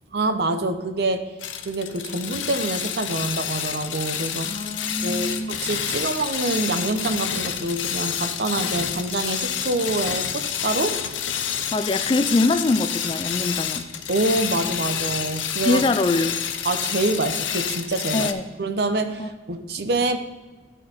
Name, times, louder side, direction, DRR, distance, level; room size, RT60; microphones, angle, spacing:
voice 1, 0.1-1.3 1.6-4.5 5.0-11.0 14.1-15.8 16.6-18.3 18.6-20.2, right 2 dB, 60° right, 8 dB, 0.7 m, -26 dB
sound 1, 1.4-18.3, left 9 dB, 90° left, 0.6 m, -29 dB
voice 2, 4.5-5.6 11.7-13.9 15.7-16.4 18.1-18.4 19.2-19.3, left 2 dB, 25° left, 8 dB, 0.3 m, -23 dB
12.0 x 4.4 x 4.3 m, 1.3 s
head